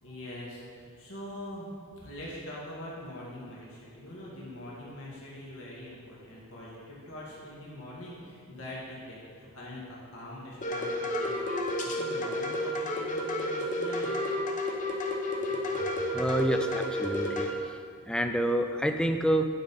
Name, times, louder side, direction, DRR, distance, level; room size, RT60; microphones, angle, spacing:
voice 1, 0.0-14.2, left 1 dB, 65° left, -6 dB, 1.8 m, -43 dB
sound 1, 10.6-17.5, left 1 dB, 35° left, 0.9 m, -31 dB
voice 2, 16.1-17.8 18.1-19.5, right 1 dB, 5° left, 6 dB, 0.3 m, -28 dB
10.0 x 5.5 x 4.0 m, 2.2 s
head